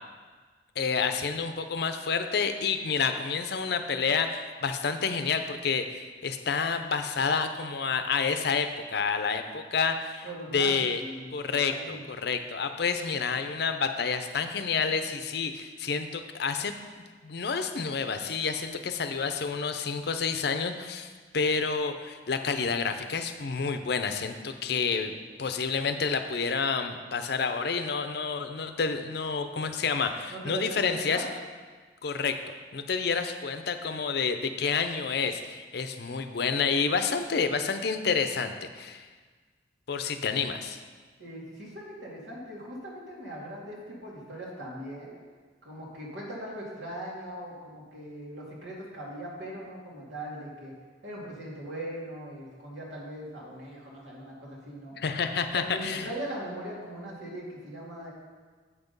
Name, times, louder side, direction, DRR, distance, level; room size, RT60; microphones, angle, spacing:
voice 1, 0.8-10.3 10.5-11.0 11.3-16.7 17.2-25.1 25.4-31.2 32.0-32.4 32.7-39.1 39.9-40.8 55.0-56.1, left 5 dB, 60° left, 8 dB, 0.6 m, -29 dB
voice 2, 10.2-12.0 30.3-31.3 41.2-45.2 45.6-50.7 51.0-55.0 55.5-58.1, right 1 dB, 90° right, -4 dB, 2.4 m, -40 dB
8.0 x 5.9 x 5.3 m, 1.5 s
head